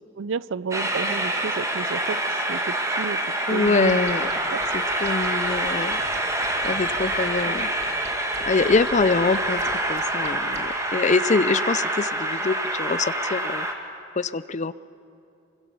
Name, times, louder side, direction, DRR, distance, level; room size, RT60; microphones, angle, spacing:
voice 1, 0.2-2.2 2.5-3.2 3.5-4.0 4.5-4.6, right 5 dB, 80° right, 20 dB, 0.5 m, -31 dB
Train, 0.7-13.7, right 1 dB, 15° right, 2.3 m, -26 dB
voice 2, 3.5-4.3 4.7-6.0 6.6-7.7 8.5-9.6 9.9-13.7 14.2-14.7, left 4 dB, 40° left, 17 dB, 0.6 m, -24 dB
sound 1, 3.7-10.7, right 2 dB, 35° right, 2.4 m, -43 dB
27.5 x 24.0 x 7.0 m, 2.7 s
head